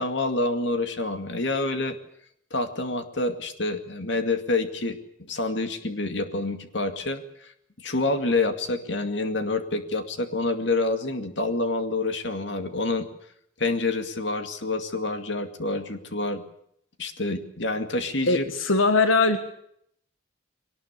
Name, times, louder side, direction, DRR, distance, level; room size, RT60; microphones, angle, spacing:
voice 1, 0.0-2.0 2.5-7.2 7.8-13.1 13.6-16.4 17.0-18.4, left 2 dB, 60° left, 7 dB, 2.3 m, -27 dB
voice 2, 18.3-19.4, left 3 dB, 90° left, 8 dB, 1.6 m, -21 dB
22.5 x 19.0 x 8.4 m, 0.71 s
head